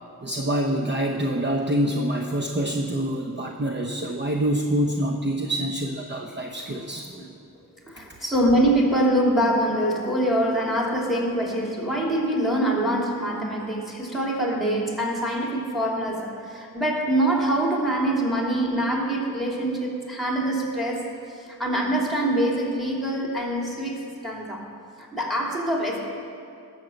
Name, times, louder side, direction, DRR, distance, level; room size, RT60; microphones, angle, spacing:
voice 1, 0.2-7.3 8.0-8.1, right 1 dB, 30° right, 2 dB, 0.8 m, -26 dB
voice 2, 7.9-24.7 25.0-26.0, right 1 dB, ahead, -2 dB, 2.9 m, -24 dB
19.5 x 6.6 x 7.7 m, 2.5 s
wide cardioid pair, 105°, 36 cm